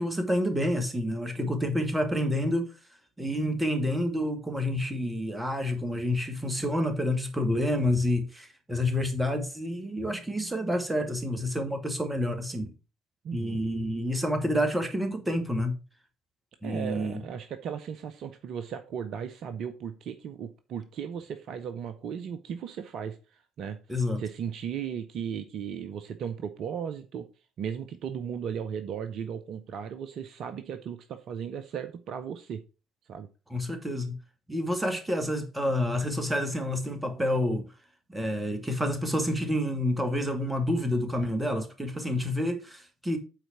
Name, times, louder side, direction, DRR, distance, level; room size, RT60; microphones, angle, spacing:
voice 1, 0.0-2.7 3.2-12.7 13.3-15.8 16.6-17.2 23.9-24.2 33.5-34.1 34.5-37.7 38.1-43.2, left 1 dB, 10° right, 2.1 m, -28 dB
voice 2, 13.2-13.6 16.6-27.3 27.6-32.6 33.1-33.3, right 8 dB, 50° right, 0.6 m, -36 dB
9.0 x 4.1 x 5.9 m
figure-of-eight pair, 50°, 0 cm